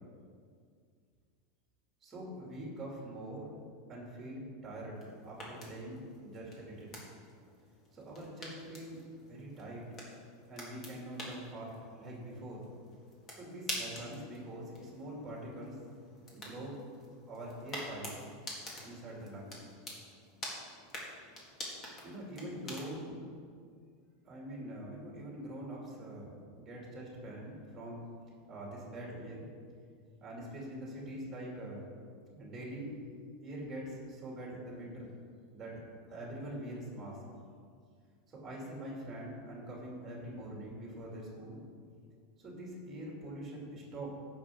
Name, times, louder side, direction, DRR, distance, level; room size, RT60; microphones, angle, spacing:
voice 1, 2.0-3.5 3.9-6.9 7.9-9.8 10.5-12.7 13.3-15.8 16.3-16.7 17.3-18.2 18.8-19.6 22.0-23.2 24.2-28.0 28.5-29.5 30.2-31.9 32.3-32.9 33.4-35.1 35.5-35.8 36.1-37.2 38.3-41.6 42.4-44.1, right 1 dB, 15° right, -3 dB, 2.5 m, -44 dB
sound 1, 4.9-23.1, left 1 dB, 20° left, 2.0 m, -47 dB
16.0 x 6.5 x 3.7 m, 2.1 s
supercardioid pair, 170°, 0 cm